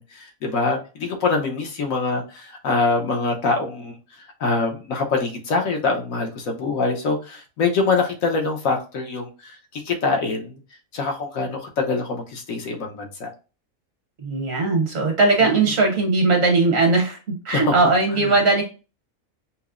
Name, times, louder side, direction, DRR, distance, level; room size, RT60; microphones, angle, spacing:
voice 1, 0.0-3.9 4.4-10.6 10.9-13.3 15.4-15.5 17.5-17.8 18.2-18.4, left 3 dB, 75° left, 2 dB, 1.3 m, -24 dB
voice 2, 14.2-18.6, right 3 dB, 65° right, 1 dB, 1.5 m, -19 dB
5.7 x 2.1 x 2.4 m, 0.33 s
omnidirectional pair, 1.4 m